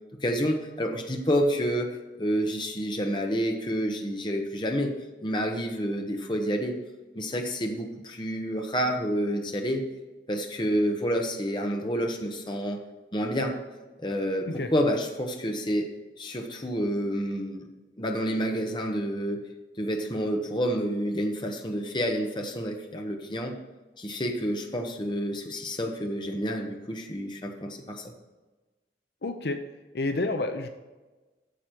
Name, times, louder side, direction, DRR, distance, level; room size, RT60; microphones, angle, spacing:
voice 1, 0.2-4.9 5.2-6.8 7.1-9.9 10.3-12.8 13.1-13.6 14.0-15.9 16.2-17.7 18.0-19.5 19.8-23.5 24.0-28.1, equal, 25° left, 3 dB, 1.1 m, -29 dB
voice 2, 29.2-29.6 29.9-30.7, left 2 dB, 70° left, 7 dB, 0.7 m, -29 dB
9.2 x 7.0 x 4.6 m, 1.2 s
head